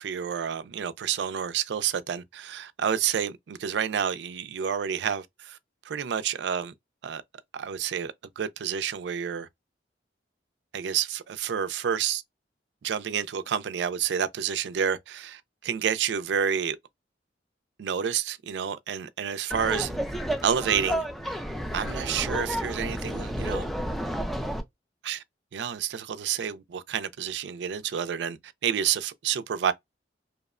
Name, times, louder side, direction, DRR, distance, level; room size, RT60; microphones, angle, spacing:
voice 1, 0.0-5.6 5.8-6.7 7.0-7.2 7.5-9.5 10.7-12.2 12.8-16.8 17.8-19.9 20.4-21.4 21.7-23.7 25.0-25.2 25.5-29.7, right 8 dB, 75° right, 0.4 m, -29 dB
Laughter, 19.5-24.6, equal, ahead, 0.3 m, -31 dB
2.8 x 2.0 x 2.3 m
head